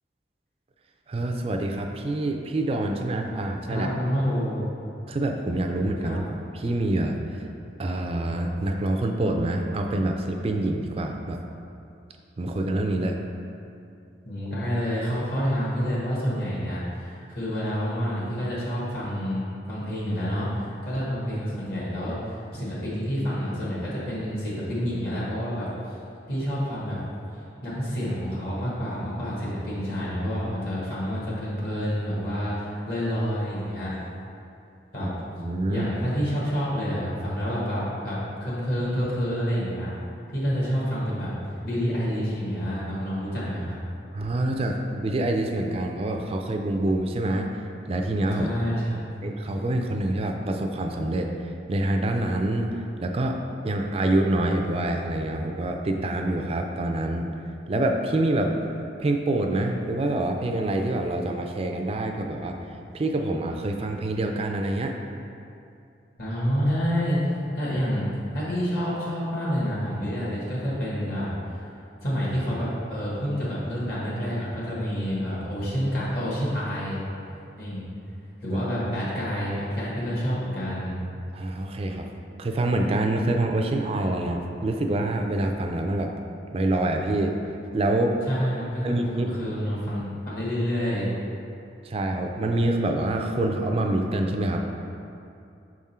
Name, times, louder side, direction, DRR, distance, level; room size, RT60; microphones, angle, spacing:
voice 1, 1.1-3.9 5.1-7.2 7.8-11.4 12.4-13.2 22.5-22.6 35.0-35.1 35.4-35.9 44.1-48.5 49.2-53.4 53.6-57.3 57.7-58.5 59.0-62.6 62.9-64.9 78.5-78.6 81.3-82.1 82.4-86.1 86.5-87.3 87.7-88.1 88.8-89.4 91.8-94.6, right 1 dB, 30° right, 3 dB, 0.3 m, -26 dB
voice 2, 3.7-4.6 6.0-6.2 14.2-25.7 26.3-27.0 27.6-34.0 34.9-35.1 35.7-39.9 40.3-43.8 48.4-49.1 66.2-68.1 68.3-71.6 72.0-77.0 77.6-77.9 78.4-81.0 88.3-91.1, equal, 55° left, -8 dB, 1.3 m, -28 dB
6.0 x 3.6 x 4.2 m, 2.6 s
head